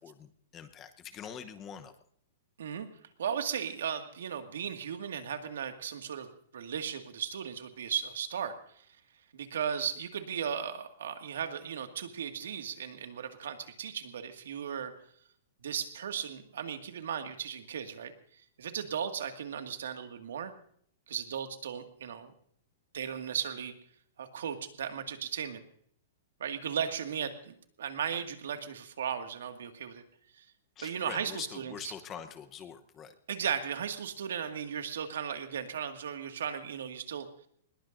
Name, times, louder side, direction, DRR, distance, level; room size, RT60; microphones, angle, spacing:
voice 1, 0.0-1.9 30.8-33.1, left 8 dB, 20° left, 9 dB, 0.9 m, -44 dB
voice 2, 3.2-8.9 9.3-14.9 15.6-18.1 18.6-20.5 21.1-22.3 22.9-23.7 24.2-25.6 26.4-30.0 30.4-30.5 30.8-31.9 33.3-37.3, right 8 dB, 80° right, 6 dB, 2.0 m, -36 dB
21.5 x 20.5 x 2.6 m, 0.63 s
hypercardioid pair, 170°, 0 cm